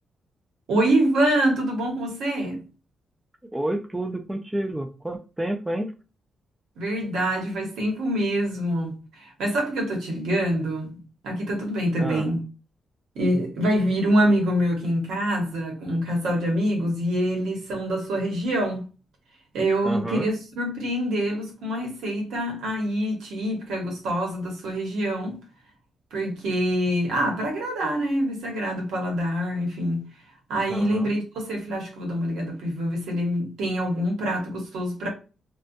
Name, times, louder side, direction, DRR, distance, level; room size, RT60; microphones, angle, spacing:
voice 1, 0.7-2.6 6.8-11.0 11.2-12.4 13.1-18.9 19.5-25.4 26.1-30.1 30.5-35.1, equal, 90° right, 1.0 m, -25 dB
voice 2, 3.5-5.9 12.0-12.3 19.8-20.3 30.7-31.1, right 1 dB, 10° right, 0.4 m, -29 dB
2.5 x 2.2 x 2.5 m
cardioid pair, 115°, 0 cm